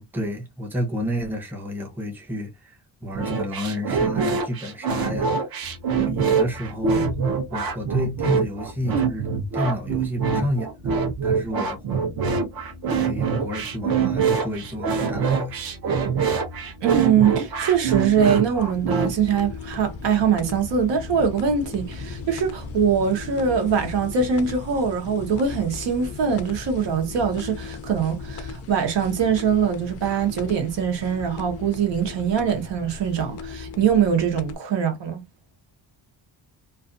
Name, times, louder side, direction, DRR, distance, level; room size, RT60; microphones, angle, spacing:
voice 1, 0.0-5.5 6.0-7.1 7.5-9.3 9.5-10.7 11.2-11.8 12.9-15.6, equal, 5° right, 0.6 m, -30 dB
sound 1, 3.1-19.1, right 6 dB, 55° right, 0.7 m, -24 dB
sound 2, 5.6-24.5, left 2 dB, 30° right, 1.0 m, -43 dB
voice 2, 16.8-35.2, right 7 dB, 80° right, 1.1 m, -23 dB
sound 3, 18.6-34.6, left 4 dB, 35° left, 0.4 m, -37 dB
2.5 x 2.4 x 2.5 m
wide cardioid pair, 180°, 43 cm